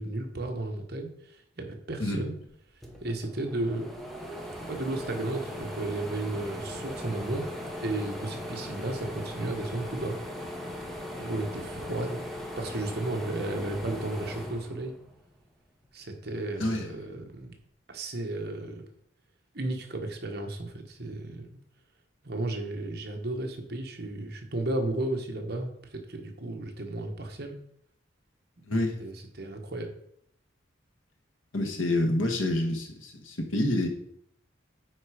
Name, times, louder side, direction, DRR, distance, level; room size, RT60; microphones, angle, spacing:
voice 1, 0.0-2.3 3.0-3.9 4.7-7.4 7.8-10.2 11.2-12.2 12.6-14.9 15.9-17.6 17.9-18.8 19.5-21.6 22.2-27.6 28.7-29.9, right 2 dB, 50° right, 3 dB, 1.3 m, -34 dB
sound 1, 2.5-2.6 2.8-15.4 15.8-17.0, left 1 dB, ahead, 0.9 m, -39 dB
voice 2, 16.6-16.9 28.7-29.0 31.5-33.9, left 1 dB, 80° left, 4 dB, 1.5 m, -27 dB
9.6 x 4.2 x 5.0 m, 0.69 s
head